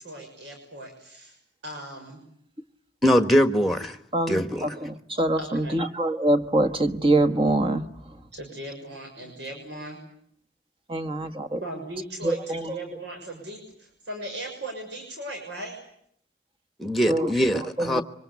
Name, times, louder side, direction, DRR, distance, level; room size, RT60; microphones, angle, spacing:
voice 1, 0.0-1.4 1.6-2.2 4.5-4.7 5.4-5.8 8.3-10.0 11.6-15.8, right 1 dB, 85° right, 3 dB, 6.3 m, -38 dB
voice 2, 3.0-4.0 4.3-4.7 16.8-18.0, equal, ahead, 9 dB, 1.4 m, -22 dB
voice 3, 4.1-4.7 5.2-7.9 10.9-11.6 12.2-12.6 17.1-17.3 17.9-18.0, right 1 dB, 30° right, 8 dB, 1.4 m, -24 dB
26.0 x 25.0 x 8.3 m, 0.70 s
head